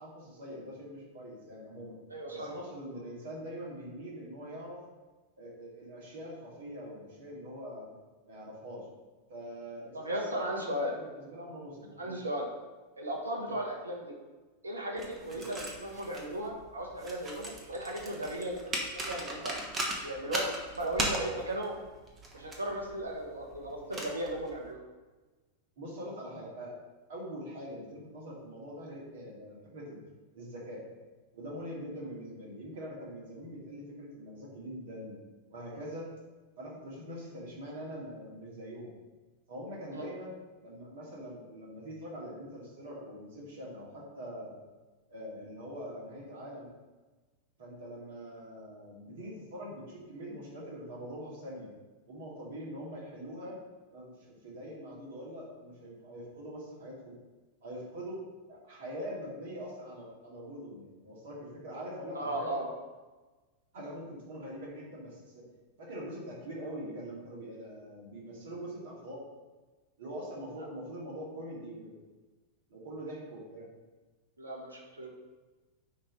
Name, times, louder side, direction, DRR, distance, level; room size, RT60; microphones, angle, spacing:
voice 1, 0.0-1.9 2.3-4.8 5.4-7.9 8.3-8.9 9.3-12.2 13.5-13.6 15.3-15.6 25.8-26.8 27.1-30.0 30.3-30.8 31.3-35.2 35.5-36.1 36.6-38.9 39.5-40.4 40.6-44.6 45.1-46.7 47.6-51.7 52.1-53.6 53.9-57.2 57.6-58.2 58.5-62.5 63.7-65.5 65.8-69.2 70.0-72.0 72.7-73.7, equal, 55° right, -4 dB, 2.2 m, -43 dB
voice 2, 2.1-2.5 9.9-10.9 12.0-12.5 13.0-14.1 14.6-19.5 20.0-20.5 20.8-21.8 22.3-24.8 39.9-40.1 62.1-62.7 74.4-75.1, right 1 dB, 75° right, 0 dB, 1.2 m, -36 dB
sound 1, 15.0-24.7, right 1 dB, 20° right, 1.2 m, -39 dB
9.7 x 3.3 x 4.0 m, 1.3 s
figure-of-eight pair, 90°, 0 cm